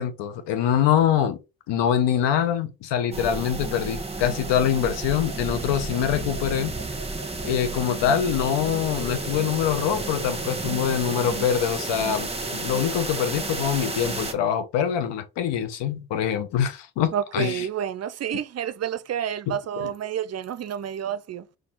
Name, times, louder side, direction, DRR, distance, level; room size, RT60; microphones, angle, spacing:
voice 1, 0.0-1.4 1.7-6.7 7.4-17.7 19.5-19.9, left 9 dB, 70° left, 1.0 m, -24 dB
sound 1, 3.1-14.3, right 3 dB, 15° right, 1.3 m, -31 dB
voice 2, 17.1-21.4, right 9 dB, 35° right, 0.5 m, -29 dB
4.3 x 3.2 x 3.7 m
hypercardioid pair, 40°, 44 cm